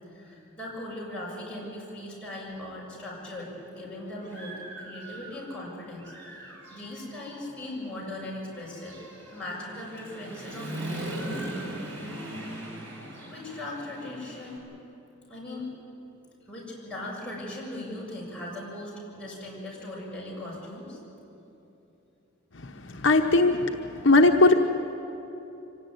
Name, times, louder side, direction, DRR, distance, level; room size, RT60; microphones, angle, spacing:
voice 1, 0.1-9.0 9.3-11.4 13.3-14.7 15.3-15.7 16.5-21.0, left 1 dB, 5° left, -6 dB, 6.9 m, -39 dB
Human voice / Motorcycle, 3.3-3.4 3.9-5.6 6.0-14.6, right 1 dB, 65° right, 5.3 m, -40 dB
voice 2, 22.9-23.7 24.0-24.5, left 2 dB, 60° left, 3 dB, 1.0 m, -18 dB
25.0 x 17.5 x 9.6 m, 2.9 s
head